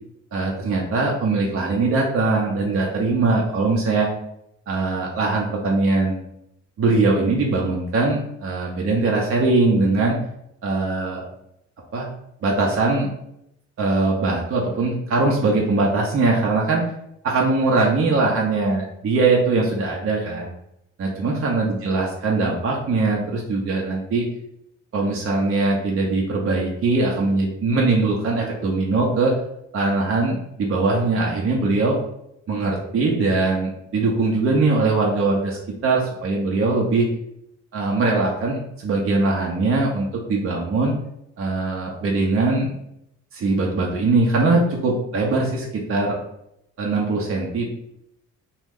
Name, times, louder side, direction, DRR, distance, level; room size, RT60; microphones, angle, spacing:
voice 1, 0.3-4.1 4.7-6.2 6.8-10.2 10.6-11.2 11.9-12.1 12.4-13.1 13.8-16.9 17.2-20.5 21.0-24.3 24.9-29.4 29.7-32.0 32.5-37.1 37.7-40.9 41.4-42.7 43.3-46.2 46.8-47.6, right 3 dB, 45° right, -1 dB, 0.7 m, -21 dB
3.0 x 2.3 x 3.5 m, 0.79 s
cardioid pair, 90°, 30 cm